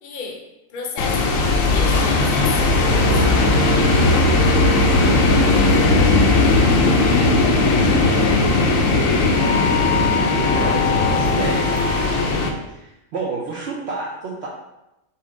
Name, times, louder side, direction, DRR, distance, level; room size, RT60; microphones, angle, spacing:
voice 1, 0.0-3.3, left 5 dB, 50° left, 2 dB, 0.7 m, -33 dB
sound 1, 1.0-12.5, left 3 dB, 80° left, 1.0 m, -17 dB
sound 2, 2.8-10.6 11.1-11.3, right 6 dB, 85° right, 1.3 m, -32 dB
voice 2, 5.5-6.5 7.7-8.4 10.3-11.7 12.7-14.5, right 3 dB, 60° right, -3 dB, 0.8 m, -30 dB
5.8 x 2.1 x 3.7 m, 0.93 s
omnidirectional pair, 1.4 m